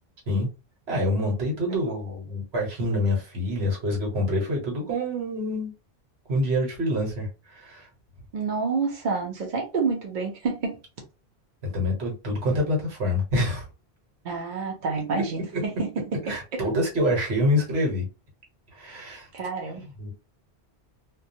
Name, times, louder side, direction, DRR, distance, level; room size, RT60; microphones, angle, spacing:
voice 1, 0.9-5.7 6.3-7.9 11.7-13.7 15.5-15.6 16.3-18.1 18.7-19.3 20.0-20.1, left 1 dB, 70° right, 1.2 m, -26 dB
voice 2, 8.3-10.8 14.2-16.3 19.3-19.8, right 4 dB, 50° right, 0.8 m, -29 dB
2.3 x 2.2 x 2.6 m
omnidirectional pair, 1.1 m